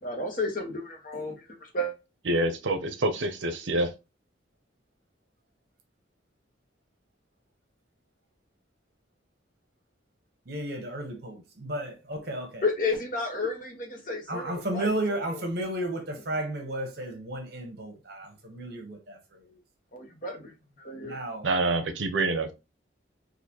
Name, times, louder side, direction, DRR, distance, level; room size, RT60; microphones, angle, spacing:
voice 1, 0.0-1.9 12.6-14.9 19.9-20.5 20.8-21.2, left 2 dB, 45° left, 1.1 m, -32 dB
voice 2, 2.3-3.9 21.4-22.5, right 2 dB, 75° right, 0.6 m, -26 dB
voice 3, 10.5-12.6 14.3-19.6 21.0-21.5, right 1 dB, 55° right, 1.0 m, -33 dB
4.1 x 2.6 x 2.8 m
head